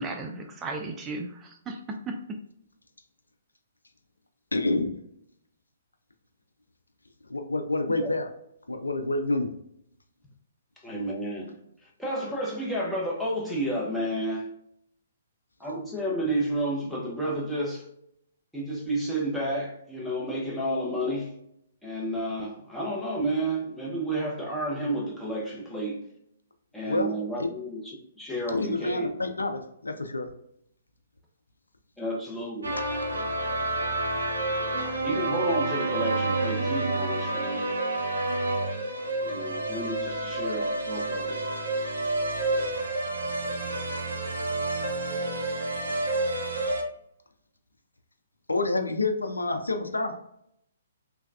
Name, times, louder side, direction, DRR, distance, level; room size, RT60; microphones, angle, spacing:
voice 1, 0.0-2.4, right 2 dB, 15° right, 0.3 m, -35 dB
voice 2, 4.5-5.0 7.3-8.3 8.7-9.5 26.8-27.1 27.4-27.5 28.5-30.3 32.8-32.9 48.5-50.1, left 2 dB, 80° left, 0.3 m, -28 dB
voice 3, 10.8-14.5 15.6-17.9 18.5-21.4 21.8-26.1 26.7-29.1 32.0-32.7 35.0-37.7 39.2-41.4, right 1 dB, ahead, 0.7 m, -31 dB
sound 1, 32.6-46.8, right 2 dB, 70° right, 0.5 m, -29 dB
3.2 x 2.2 x 2.3 m
figure-of-eight pair, 125°, 0 cm